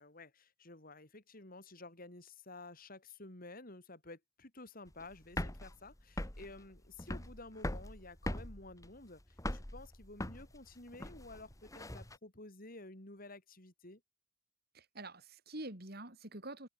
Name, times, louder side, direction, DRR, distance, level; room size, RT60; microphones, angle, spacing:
voice 1, 0.0-14.0, left 2 dB, 50° left, 5.1 m, -52 dB
sound 1, 4.9-12.2, left 1 dB, 20° left, 2.2 m, -41 dB
voice 2, 14.7-16.7, right 2 dB, 55° right, 5.2 m, -46 dB
open air
head